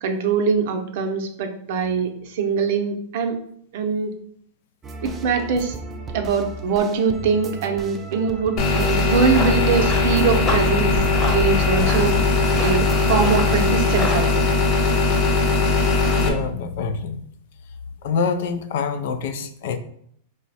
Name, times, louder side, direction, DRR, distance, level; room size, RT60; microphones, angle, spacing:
voice 1, 0.0-3.4 3.7-4.1 5.0-5.8 6.1-10.9 11.3-12.1 12.6-14.5, right 5 dB, 60° right, 5 dB, 0.6 m, -22 dB
sound 1, 4.8-13.9, right 4 dB, 20° right, 0.4 m, -35 dB
sound 2, 8.6-16.3, left 3 dB, 35° left, 0.8 m, -19 dB
Run, 9.1-14.2, left 2 dB, 15° left, 1.1 m, -32 dB
voice 2, 16.2-17.2 18.0-19.8, left 5 dB, 65° left, 9 dB, 0.4 m, -25 dB
4.8 x 2.1 x 4.0 m, 0.67 s
supercardioid pair, 150°, 0 cm